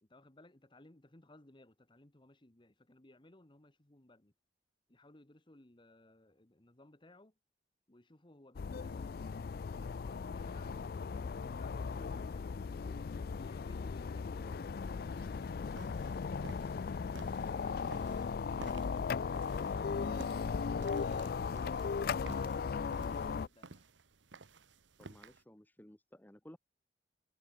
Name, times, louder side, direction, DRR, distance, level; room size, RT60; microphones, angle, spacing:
voice 1, 0.0-4.3 4.9-7.3 7.9-9.4 9.7-10.8 11.5-17.0 17.3-19.1 22.1-23.9, left 1 dB, 25° left, 1.4 m, -60 dB
sound 1, 8.5-23.5, left 5 dB, 55° left, 0.4 m, -37 dB
sound 2, 15.1-25.4, right 3 dB, 90° right, 1.3 m, -55 dB
voice 2, 25.0-26.6, equal, 10° left, 1.1 m, -56 dB
head